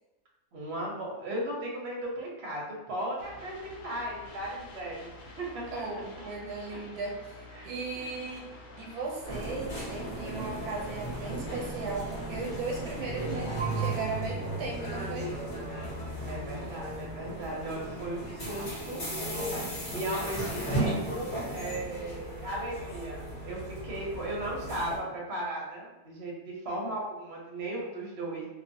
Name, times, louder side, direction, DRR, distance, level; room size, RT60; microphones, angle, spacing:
voice 1, 0.5-5.1 5.4-6.2 6.7-6.8 7.5-7.7 8.0-8.1 16.2-19.0 19.5-28.5, right 1 dB, 50° right, -3 dB, 0.8 m, -36 dB
sound 1, 3.2-13.9, left 2 dB, 75° left, 1.1 m, -49 dB
voice 2, 5.7-8.5 8.8-15.3, right 3 dB, 90° right, -2 dB, 1.2 m, -37 dB
sound 2, 9.2-25.0, right 2 dB, 40° left, 0.8 m, -35 dB
2.4 x 2.4 x 2.6 m, 1.0 s
omnidirectional pair, 1.6 m